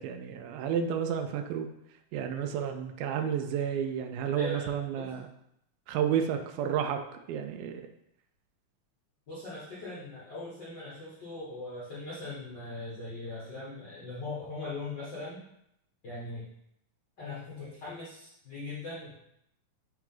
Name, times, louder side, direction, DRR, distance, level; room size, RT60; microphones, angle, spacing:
voice 1, 0.0-1.7 2.1-5.3 5.9-7.0 7.3-7.8, right 8 dB, 85° right, 6 dB, 2.4 m, -31 dB
voice 2, 4.3-5.1 9.3-15.4 16.0-16.5 17.2-19.1, left 2 dB, 55° left, -9 dB, 1.2 m, -40 dB
7.4 x 3.9 x 3.9 m, 0.78 s
omnidirectional pair, 4.1 m